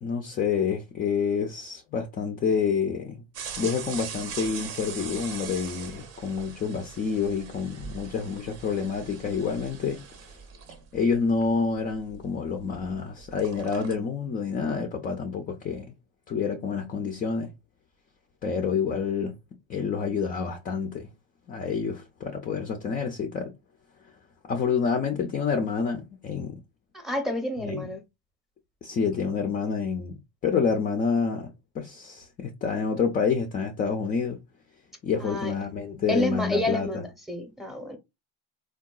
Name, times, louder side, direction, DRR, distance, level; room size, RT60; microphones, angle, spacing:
voice 1, 0.0-3.2 3.6-10.0 10.9-15.9 16.3-17.5 18.4-19.3 19.7-21.1 21.5-23.5 24.5-26.6 27.6-27.9 28.8-30.1 30.4-34.4 35.0-37.0, left 6 dB, 25° left, 0.4 m, -28 dB
sound 1, 3.3-12.9 13.2-13.9, right 7 dB, 50° right, 0.7 m, -41 dB
voice 2, 26.9-28.0 35.2-35.5 36.1-38.0, left 1 dB, ahead, 0.7 m, -29 dB
3.7 x 2.2 x 2.2 m
supercardioid pair, 115°, 33 cm